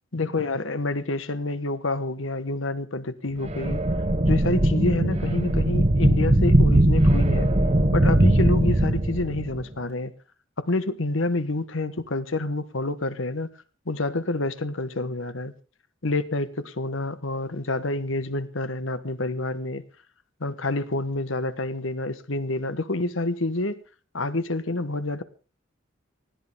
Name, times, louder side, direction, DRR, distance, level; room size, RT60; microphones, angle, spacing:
voice 1, 0.1-3.8 4.2-7.5 7.9-10.1 10.6-13.5 13.8-15.5 16.0-19.8 20.4-23.8 24.1-25.2, left 2 dB, 75° left, 1.4 m, -28 dB
sound 1, 3.4-9.6, right 1 dB, 35° right, 1.2 m, -20 dB
20.0 x 15.5 x 3.6 m
head